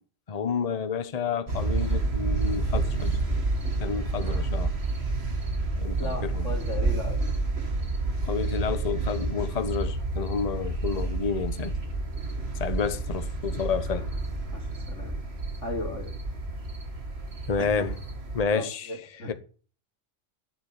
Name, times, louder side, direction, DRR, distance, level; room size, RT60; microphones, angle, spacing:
voice 1, 0.3-3.2 3.8-4.7 5.7-6.5 8.2-11.8 12.5-14.1 17.5-18.0 18.3-18.9 19.3-19.4, left 5 dB, 35° left, 1.0 m, -30 dB
sound 1, 1.5-18.4, right 3 dB, 50° right, 2.2 m, -29 dB
voice 2, 6.0-7.2 14.5-15.2 15.6-16.1 17.6-17.9 18.5-19.3, left 2 dB, 65° left, 3.4 m, -36 dB
10.5 x 7.0 x 9.2 m
omnidirectional pair, 1.4 m